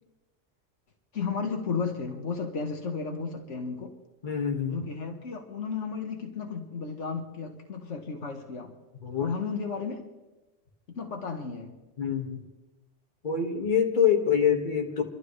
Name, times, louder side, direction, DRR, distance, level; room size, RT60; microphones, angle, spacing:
voice 1, 1.1-4.0 4.7-8.8 9.2-10.1 10.9-11.8, left 5 dB, 75° left, 3 dB, 1.7 m, -33 dB
voice 2, 4.2-4.8 9.0-9.3 12.0-12.4 13.2-15.0, left 7 dB, 40° left, 1 dB, 1.9 m, -25 dB
26.5 x 12.5 x 3.2 m, 1.1 s
omnidirectional pair, 1.2 m